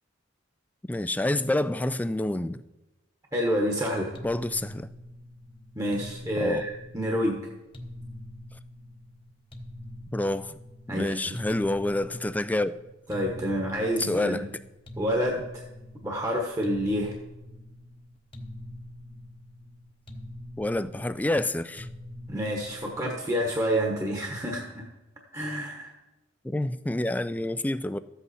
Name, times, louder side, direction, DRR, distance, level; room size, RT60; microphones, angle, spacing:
voice 1, 0.9-2.6 4.2-4.9 6.4-6.6 10.1-10.5 10.9-12.7 14.0-14.4 20.6-21.9 26.4-28.0, left 1 dB, 10° left, 0.3 m, -28 dB
voice 2, 3.3-4.1 5.7-7.5 10.9-11.4 13.1-14.5 15.0-15.6 16.0-17.1 22.3-24.8 25.3-25.9, equal, 20° right, 1.2 m, -28 dB
sound 1, 4.1-23.5, left 1 dB, 30° left, 0.9 m, -44 dB
13.5 x 8.1 x 4.2 m
head